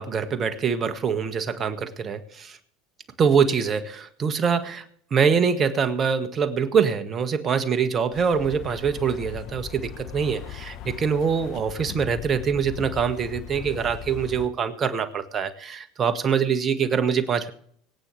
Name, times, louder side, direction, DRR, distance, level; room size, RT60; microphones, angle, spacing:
voice 1, 0.0-2.6 3.2-4.8 5.1-17.5, right 6 dB, 35° right, 8 dB, 1.7 m, -24 dB
sound 1, 8.1-14.5, left 10 dB, 55° left, 1.1 m, -39 dB
25.0 x 9.1 x 3.3 m, 0.63 s
hypercardioid pair, 85°, 0 cm